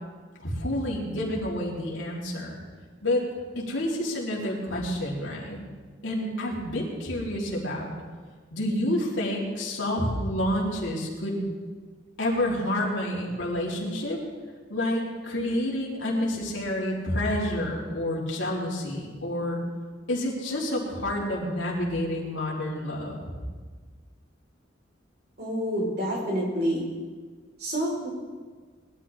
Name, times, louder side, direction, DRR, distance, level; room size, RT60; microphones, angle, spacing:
voice 1, 0.4-2.6 3.0-3.2 3.5-5.6 6.0-7.9 8.5-11.5 12.2-14.2 14.7-19.6 20.1-23.3, left 1 dB, 80° left, -4 dB, 3.8 m, -29 dB
voice 2, 25.4-26.8 27.6-28.1, equal, 55° right, -3 dB, 4.7 m, -28 dB
21.0 x 13.0 x 3.7 m, 1.5 s
head